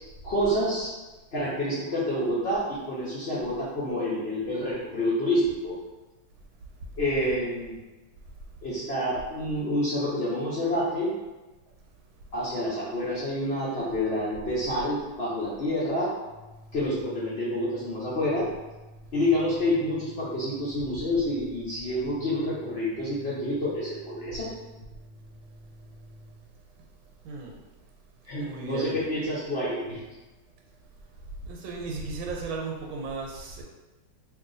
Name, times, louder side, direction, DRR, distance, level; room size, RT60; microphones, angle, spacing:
voice 1, 0.2-0.9 1.3-5.7 7.0-7.7 8.6-11.1 12.3-16.1 16.7-18.4 19.1-24.5 28.3-30.0, left 1 dB, 80° left, -9 dB, 0.5 m, -28 dB
Organ, 16.2-26.5, equal, 50° right, 1.1 m, -50 dB
voice 2, 27.2-27.6 28.4-29.0 31.4-33.6, right 4 dB, 85° right, 0 dB, 1.4 m, -35 dB
2.9 x 2.7 x 3.8 m, 1.1 s
omnidirectional pair, 2.2 m